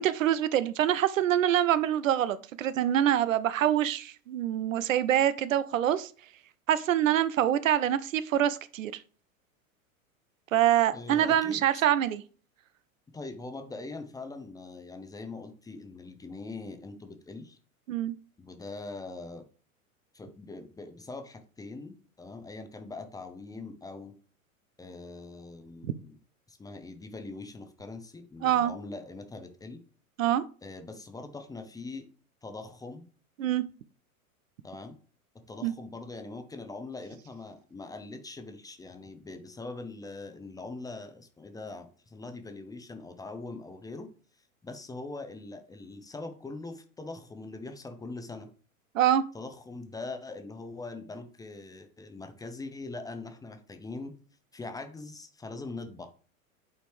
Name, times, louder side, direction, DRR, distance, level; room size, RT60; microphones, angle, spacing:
voice 1, 0.0-6.1 6.7-9.0 10.5-12.2 17.9-18.1 25.8-25.9 28.4-28.7 30.2-30.4 33.4-33.6 35.6-35.7 48.9-49.2, right 11 dB, 65° right, 0.6 m, -25 dB
voice 2, 10.9-11.6 13.1-17.6 18.4-19.4 20.1-24.1 24.8-26.2 26.5-29.8 30.6-32.1 32.4-33.0 34.6-35.0 35.5-44.1 44.6-48.5 49.3-54.2 54.5-56.1, left 3 dB, 10° left, 0.7 m, -42 dB
8.5 x 4.2 x 3.2 m
figure-of-eight pair, 90°, 43 cm